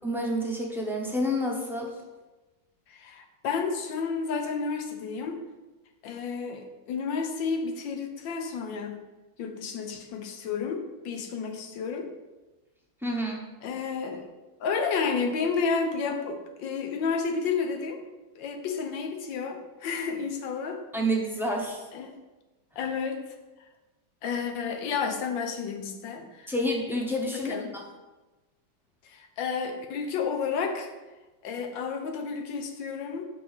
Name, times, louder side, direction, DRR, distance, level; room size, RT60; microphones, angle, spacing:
voice 1, 0.0-2.0 13.0-13.4 20.9-21.8 26.5-27.8, equal, ahead, -1 dB, 0.6 m, -29 dB
voice 2, 2.9-5.4 6.0-9.0 9.4-12.1 13.6-14.3 14.6-18.0 18.4-20.8 21.9-22.1 22.8-23.2 24.2-26.5 27.5-27.7 29.0-30.9 31.4-33.2, left 5 dB, 85° left, 5 dB, 1.6 m, -31 dB
5.3 x 5.2 x 6.4 m, 1.1 s
omnidirectional pair, 2.0 m